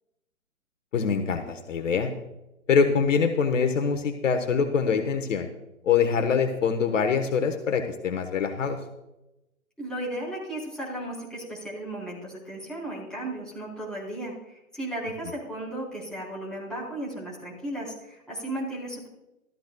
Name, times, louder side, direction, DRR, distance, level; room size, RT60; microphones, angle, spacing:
voice 1, 0.9-2.1 2.7-5.5 5.8-8.8, left 6 dB, 60° left, 6 dB, 1.2 m, -24 dB
voice 2, 9.8-19.1, right 1 dB, ahead, -6 dB, 3.8 m, -35 dB
15.0 x 13.5 x 2.2 m, 0.95 s
hypercardioid pair, 145°, 43 cm